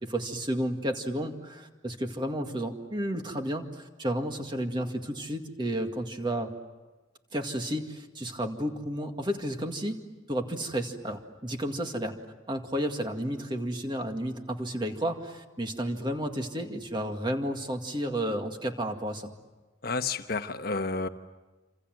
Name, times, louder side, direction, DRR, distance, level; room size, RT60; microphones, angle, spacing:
voice 1, 0.0-6.5 7.3-10.0 10.3-12.1 12.5-19.3, equal, 25° right, 4 dB, 2.0 m, -32 dB
voice 2, 19.8-21.1, left 4 dB, 50° left, 8 dB, 1.2 m, -30 dB
27.5 x 27.0 x 7.7 m, 1.2 s
head